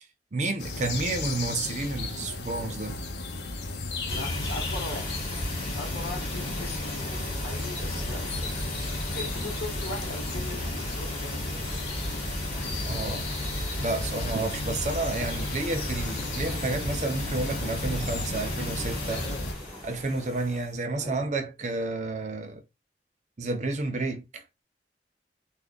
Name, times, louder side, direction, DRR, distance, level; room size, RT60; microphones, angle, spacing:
voice 1, 0.3-3.0 12.8-13.3 13.8-19.3 19.8-22.6 23.4-24.4, right 2 dB, 40° right, 0.6 m, -30 dB
sound 1, 0.6-19.5, left 3 dB, 80° left, 0.7 m, -35 dB
voice 2, 4.1-5.1 5.7-8.5 9.1-11.7 21.0-21.2, left 2 dB, 65° left, 1.1 m, -39 dB
sound 2, 4.1-20.8, left 1 dB, 30° left, 1.9 m, -34 dB
sound 3, 6.0-20.6, equal, ahead, 0.7 m, -48 dB
3.4 x 2.1 x 3.8 m
head